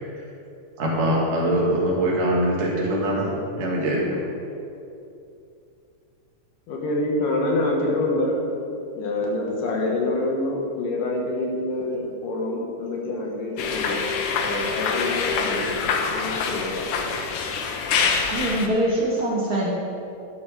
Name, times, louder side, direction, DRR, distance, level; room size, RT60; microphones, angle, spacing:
voice 1, 0.8-4.3, right 1 dB, 80° right, -4 dB, 3.7 m, -23 dB
voice 2, 6.7-8.4 9.0-14.0 14.4-16.9, left 2 dB, 90° left, -1 dB, 3.1 m, -26 dB
sound 1, 13.6-18.7, left 5 dB, 75° left, 1.4 m, -25 dB
voice 3, 18.3-19.7, right 1 dB, 45° right, -4 dB, 1.3 m, -23 dB
12.0 x 11.0 x 3.4 m, 2.6 s
omnidirectional pair, 3.6 m